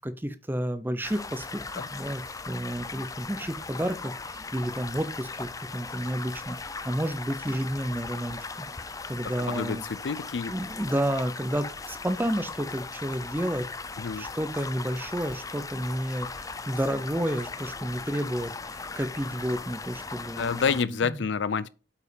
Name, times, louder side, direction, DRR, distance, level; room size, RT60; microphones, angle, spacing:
voice 1, 0.0-6.6 6.8-8.7 9.1-9.8 10.5-13.7 14.1-21.2, right 1 dB, 10° right, 0.8 m, -31 dB
sound 1, 1.0-20.8, left 4 dB, 20° left, 0.5 m, -38 dB
voice 2, 9.4-10.5 14.0-14.3 20.4-21.7, left 5 dB, 90° left, 0.5 m, -28 dB
8.2 x 5.4 x 5.1 m
head